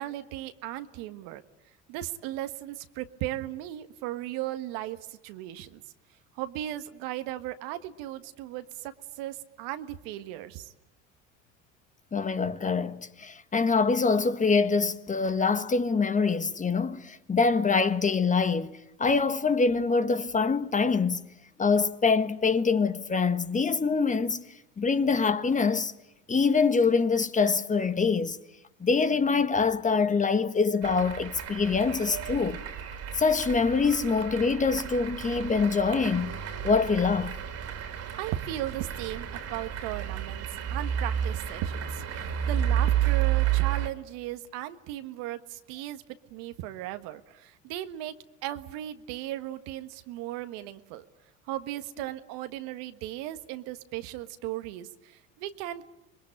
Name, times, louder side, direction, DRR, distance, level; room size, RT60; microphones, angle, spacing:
voice 1, 0.0-1.4 1.9-5.8 6.4-10.7 38.1-46.0 46.3-48.2 48.4-51.0 51.5-55.9, right 14 dB, 75° right, 1.6 m, -36 dB
voice 2, 12.1-18.7 19.0-21.2 21.6-24.4 24.8-25.9 26.3-28.4 28.8-32.6 33.1-36.3 36.6-37.3, left 4 dB, 20° left, 1.4 m, -25 dB
sound 1, 30.8-43.9, right 10 dB, 50° right, 3.0 m, -31 dB
26.0 x 21.5 x 8.9 m
supercardioid pair, 90°, 33 cm